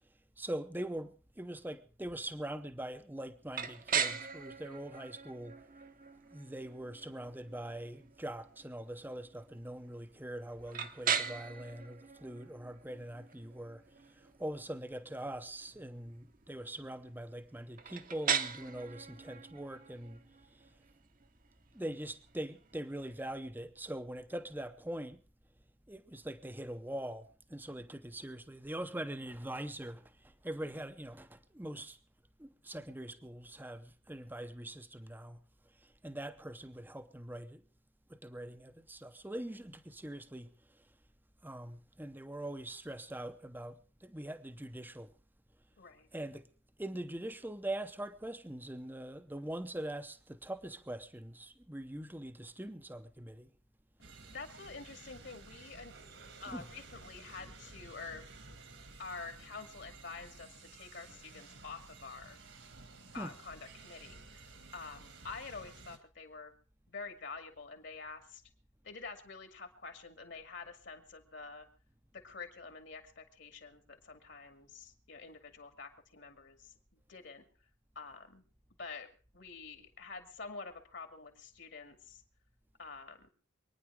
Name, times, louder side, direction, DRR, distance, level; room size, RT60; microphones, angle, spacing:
voice 1, 0.4-5.6 6.3-20.2 20.5-20.7 21.7-25.2 25.9-32.0 32.4-35.4 35.8-37.6 38.1-40.9 41.4-45.1 46.1-46.5 46.8-53.5 56.5-56.7 63.2-63.3, right 1 dB, 10° right, 0.7 m, -43 dB
sound 1, 3.5-23.3, right 7 dB, 45° right, 1.0 m, -40 dB
voice 2, 45.8-46.1 54.3-55.9 56.4-58.3 59.0-62.4 63.1-64.2 64.7-66.5 66.9-68.4 68.8-71.7 72.1-77.4 78.0-78.4 78.8-79.1 79.3-82.2 82.8-83.3, left 4 dB, 60° left, 2.3 m, -47 dB
sound 2, 54.0-66.0, right 3 dB, 65° right, 1.9 m, -54 dB
25.0 x 9.9 x 4.8 m
head